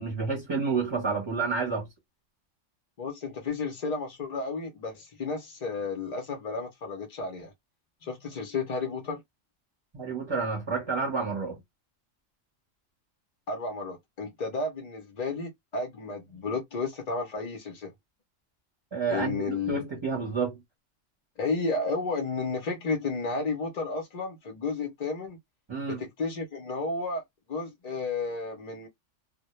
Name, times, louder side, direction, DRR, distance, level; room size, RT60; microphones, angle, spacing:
voice 1, 0.0-1.9 9.9-11.6 18.9-20.6 25.7-26.0, right 4 dB, 25° right, 0.7 m, -29 dB
voice 2, 3.0-7.5 8.0-9.2 13.5-17.9 19.1-19.8 21.4-25.4 25.9-27.2 27.5-28.9, left 3 dB, 55° left, 0.4 m, -32 dB
2.1 x 2.0 x 2.9 m
omnidirectional pair, 1.3 m